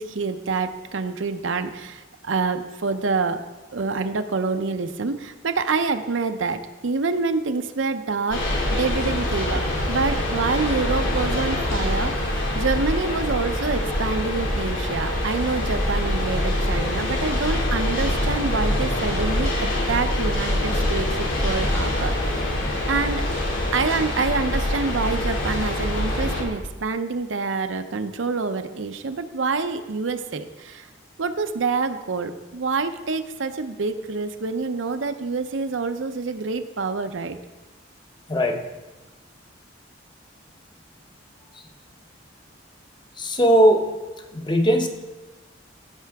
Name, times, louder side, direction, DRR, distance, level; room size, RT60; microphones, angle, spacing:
voice 1, 0.0-3.4 3.7-22.5 22.9-23.3 23.7-30.9 31.2-37.4, right 4 dB, 75° right, 8 dB, 0.6 m, -27 dB
sound 1, 8.3-26.4, left 1 dB, 90° left, 2.5 m, -24 dB
voice 2, 38.3-38.6 43.2-43.9 44.3-44.9, equal, 25° left, 4 dB, 0.8 m, -18 dB
15.5 x 6.7 x 3.5 m, 1.2 s
head